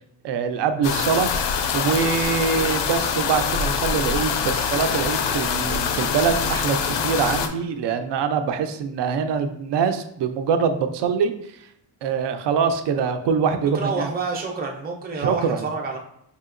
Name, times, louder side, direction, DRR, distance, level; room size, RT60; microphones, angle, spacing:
voice 1, 0.2-1.3 1.7-11.3 12.0-14.1 15.2-15.6, right 6 dB, 75° right, 8 dB, 0.5 m, -24 dB
sound 1, 0.8-7.5, left 6 dB, 80° left, 0.5 m, -24 dB
voice 2, 13.7-16.0, right 4 dB, 25° right, 1 dB, 0.5 m, -28 dB
4.8 x 2.7 x 2.5 m, 0.73 s
wide cardioid pair, 155°, 42 cm